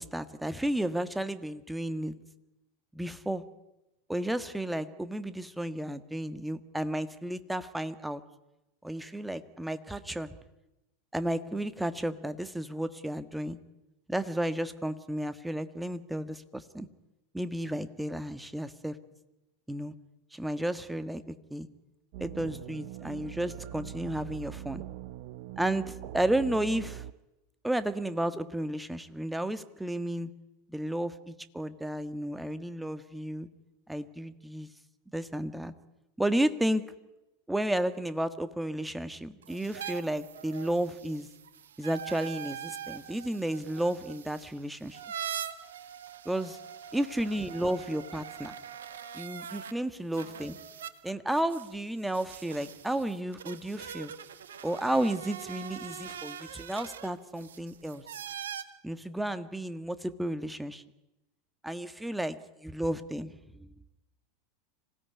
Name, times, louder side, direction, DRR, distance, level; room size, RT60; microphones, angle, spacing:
voice 1, 0.0-2.1 2.9-3.4 4.1-8.2 8.8-10.3 11.1-13.6 14.1-16.9 17.3-19.0 19.7-19.9 20.3-21.7 22.2-24.8 25.6-27.0 27.6-30.3 30.7-33.5 33.9-34.7 35.1-35.7 36.2-36.8 37.5-41.3 41.8-45.0 46.2-46.5 46.9-48.5 49.1-50.6 51.0-54.1 54.6-58.0 58.8-60.8 61.6-63.7, right 1 dB, 5° right, 12 dB, 1.6 m, -32 dB
sound 1, 22.1-27.1, right 13 dB, 55° right, 0.9 m, -42 dB
sound 2, 39.4-49.7 50.1-58.6, right 9 dB, 70° right, 1.5 m, -43 dB
26.0 x 17.0 x 9.5 m, 0.94 s
figure-of-eight pair, 85°, 0 cm